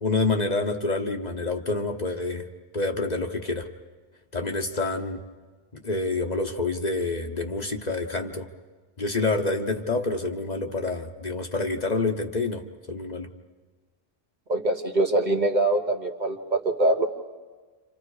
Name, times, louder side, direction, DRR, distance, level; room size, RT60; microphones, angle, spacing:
voice 1, 0.0-2.5 2.7-3.6 4.3-5.2 5.7-8.5 9.0-13.3, left 3 dB, 45° left, 4 dB, 1.1 m, -27 dB
voice 2, 14.5-17.1, right 2 dB, 45° right, 3 dB, 1.4 m, -23 dB
29.5 x 26.5 x 4.9 m, 1.4 s
omnidirectional pair, 1.0 m